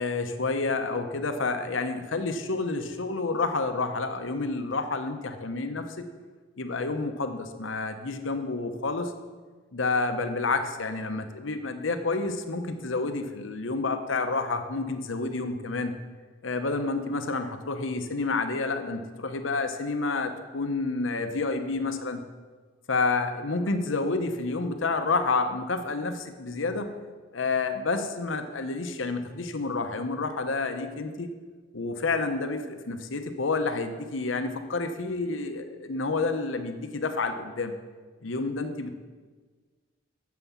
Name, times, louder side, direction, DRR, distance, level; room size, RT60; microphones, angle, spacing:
voice 1, 0.0-6.1 6.6-9.1 9.7-15.9 16.4-22.2 22.9-26.9 27.3-31.3 31.7-37.7 38.2-38.9, left 3 dB, 80° left, 8 dB, 0.9 m, -29 dB
9.3 x 7.2 x 7.3 m, 1.4 s
head